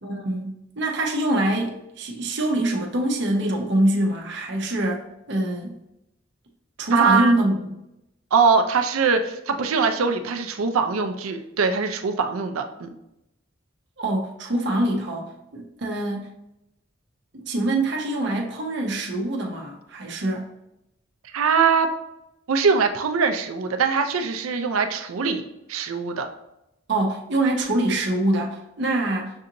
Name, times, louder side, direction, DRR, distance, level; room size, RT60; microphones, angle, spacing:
voice 1, 0.0-5.8 6.8-7.6 14.0-16.3 17.3-20.4 26.9-29.3, right 1 dB, 55° right, 0 dB, 0.8 m, -24 dB
voice 2, 6.9-7.3 8.3-12.9 21.3-21.9 22.5-26.3, right 5 dB, 85° right, 6 dB, 0.5 m, -22 dB
6.3 x 2.6 x 2.8 m, 0.86 s
head